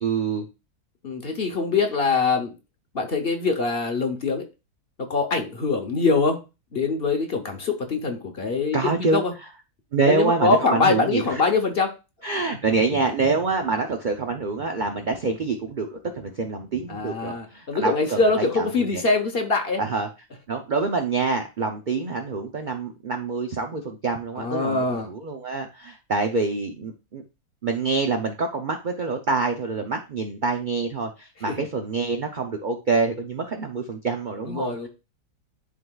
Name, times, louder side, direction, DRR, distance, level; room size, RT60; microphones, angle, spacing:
voice 1, 0.0-0.5 8.7-9.3 9.9-11.4 12.2-19.0 19.8-20.1 20.5-27.2 27.6-34.9, right 4 dB, 60° right, 4 dB, 0.5 m, -26 dB
voice 2, 1.0-2.5 2.9-4.4 5.1-6.4 6.7-9.3 10.0-11.9 16.9-19.8 24.4-25.1 31.5-31.7 34.5-34.9, left 4 dB, 45° left, 4 dB, 1.0 m, -23 dB
11.0 x 3.8 x 2.4 m, 0.28 s
omnidirectional pair, 1.6 m